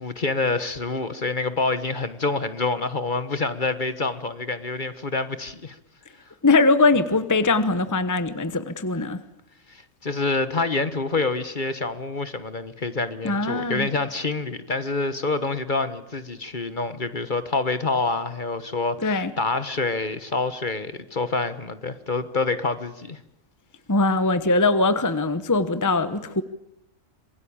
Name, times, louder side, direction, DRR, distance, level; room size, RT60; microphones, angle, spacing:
voice 1, 0.0-5.8 9.7-23.2, left 3 dB, 40° left, 12 dB, 1.4 m, -27 dB
voice 2, 6.4-9.2 13.2-13.9 19.0-19.3 23.9-26.4, left 3 dB, 15° left, 12 dB, 1.0 m, -21 dB
26.5 x 22.0 x 8.8 m, 0.79 s
omnidirectional pair, 1.4 m